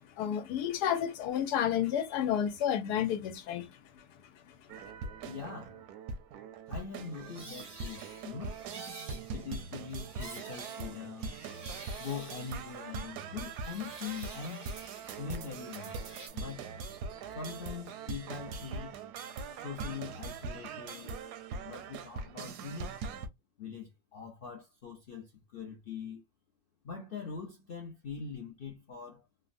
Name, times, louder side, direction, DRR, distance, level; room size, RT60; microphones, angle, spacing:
voice 1, 0.2-4.1 4.5-4.6, left 9 dB, 90° left, 1.2 m, -31 dB
sound 1, 4.7-23.3, right 4 dB, 80° right, 1.1 m, -42 dB
voice 2, 5.2-5.8 6.7-8.6 9.3-11.4 12.0-14.7 15.2-16.0 16.3-16.8 17.3-19.0 19.5-21.2 21.6-22.9 23.6-26.2 26.8-29.3, left 6 dB, 75° left, 0.5 m, -42 dB
sound 2, 6.9-13.2 13.4-16.3, right 3 dB, 40° right, 0.3 m, -49 dB
3.2 x 2.0 x 2.5 m
omnidirectional pair, 1.7 m